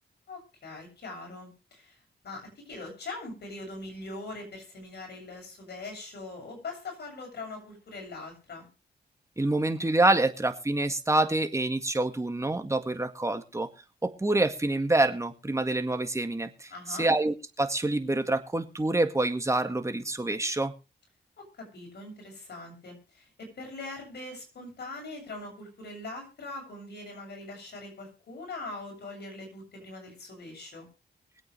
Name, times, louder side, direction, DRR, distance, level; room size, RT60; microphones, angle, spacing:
voice 1, 0.3-2.0 2.2-8.7 16.7-17.1 21.4-30.9, left 2 dB, 65° left, 2 dB, 7.7 m, -42 dB
voice 2, 9.4-13.7 14.0-20.7, right 2 dB, 15° right, 7 dB, 1.9 m, -27 dB
23.5 x 8.6 x 3.4 m, 0.31 s
cardioid pair, 75°, 18 cm